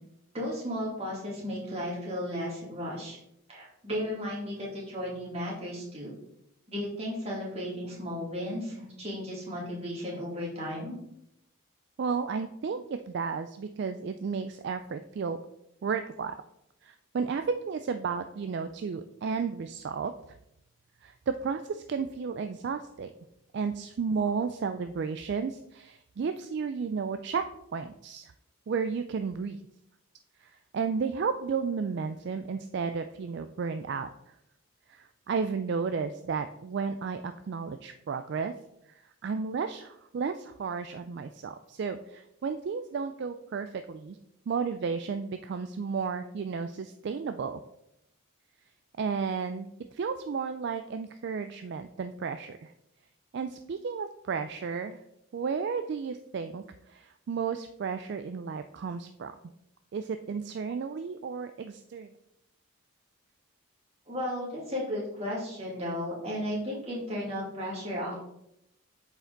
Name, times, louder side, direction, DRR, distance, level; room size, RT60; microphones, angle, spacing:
voice 1, 0.3-3.2 3.5-6.1 6.7-11.0 64.1-68.2, equal, 30° right, -5 dB, 2.5 m, -34 dB
voice 2, 12.0-15.4 15.8-16.4 16.8-20.1 21.0-23.1 23.5-27.4 27.7-28.3 28.7-29.6 30.4-34.1 34.9-38.5 39.2-44.2 44.5-47.6 49.0-52.7 53.3-55.0 55.3-59.3 59.9-62.1, right 5 dB, 55° right, 9 dB, 0.3 m, -33 dB
7.8 x 4.9 x 3.9 m, 0.80 s
head